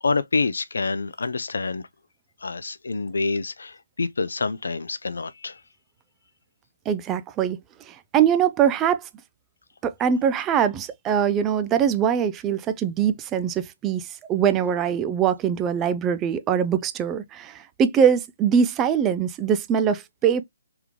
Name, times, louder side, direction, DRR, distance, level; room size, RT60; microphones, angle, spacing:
voice 1, 0.0-1.9 2.4-5.6, left 3 dB, 65° left, 0.5 m, -27 dB
voice 2, 6.9-7.6 7.9-9.1 9.8-20.4, right 8 dB, 15° right, 0.3 m, -22 dB
3.5 x 3.5 x 3.0 m
figure-of-eight pair, 140°, 0 cm